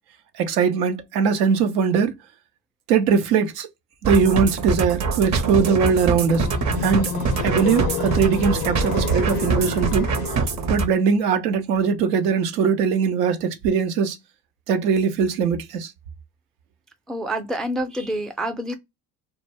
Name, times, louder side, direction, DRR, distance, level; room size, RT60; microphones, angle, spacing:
voice 1, 0.4-2.1 2.9-3.7 4.0-6.5 6.8-7.1 7.4-10.1 10.7-14.2 14.7-15.9, right 6 dB, 80° right, 0.7 m, -21 dB
sound 1, 4.0-10.9, right 4 dB, 40° right, 0.7 m, -24 dB
sound 2, 6.1-10.7, left 9 dB, 50° left, 0.5 m, -30 dB
voice 2, 17.1-18.7, right 1 dB, ahead, 0.3 m, -27 dB
2.2 x 2.1 x 3.2 m
hypercardioid pair, 70°, 45 cm